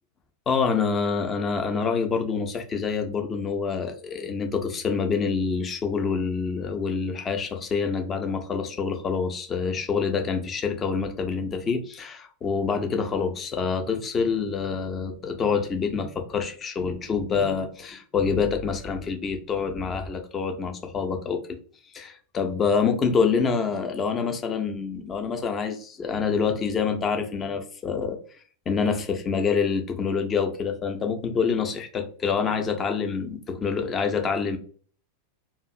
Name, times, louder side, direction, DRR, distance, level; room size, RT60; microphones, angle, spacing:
voice 1, 0.5-21.4 21.9-28.2 28.7-34.6, left 5 dB, 25° left, 5 dB, 0.5 m, -26 dB
2.5 x 2.4 x 2.5 m, 0.43 s
figure-of-eight pair, 90°, 0 cm